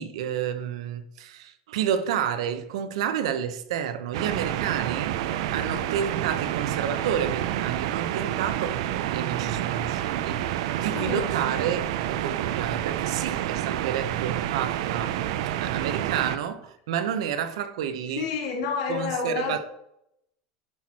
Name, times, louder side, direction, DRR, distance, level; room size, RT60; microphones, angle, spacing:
voice 1, 0.0-5.2 5.5-15.2 15.6-18.3 18.9-19.6, right 8 dB, 90° right, 1.0 m, -30 dB
sound 1, 4.1-16.4, right 12 dB, 70° right, 0.7 m, -28 dB
voice 2, 10.9-11.3 18.1-19.6, left 5 dB, 80° left, 3.4 m, -29 dB
10.5 x 6.3 x 4.3 m
supercardioid pair, 165°, 3 cm